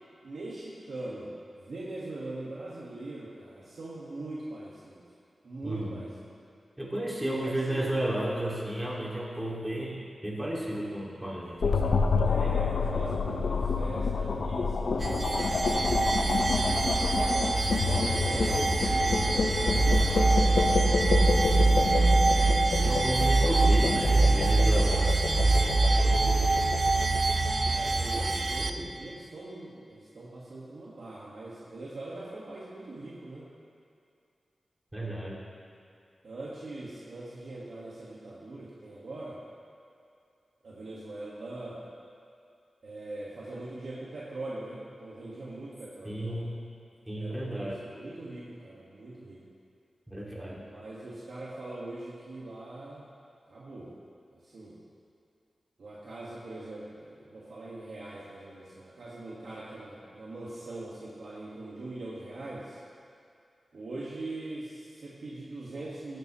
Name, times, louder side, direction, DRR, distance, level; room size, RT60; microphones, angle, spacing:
voice 1, 0.2-1.3 1.6-5.0 5.4-6.1 7.4-7.9 12.3-16.8 17.8-20.8 27.7-33.5 36.2-39.4 40.6-41.8 42.8-46.5 47.2-49.4 50.7-53.1 53.5-53.9 54.3-54.8 55.8-62.8 63.7-66.2, right 2 dB, 70° right, -7 dB, 1.7 m, -41 dB
voice 2, 5.6-6.0 6.8-12.5 22.8-25.6 25.8-26.6 34.9-35.4 46.0-46.6 47.1-47.8 50.1-50.6, right 1 dB, 10° right, -5 dB, 2.3 m, -33 dB
sound 1, 11.6-28.9, left 4 dB, 75° left, 0.7 m, -29 dB
sound 2, 15.0-28.7, right 3 dB, 35° right, 0.4 m, -24 dB
18.5 x 10.5 x 3.1 m, 2.4 s
wide cardioid pair, 135°, 0 cm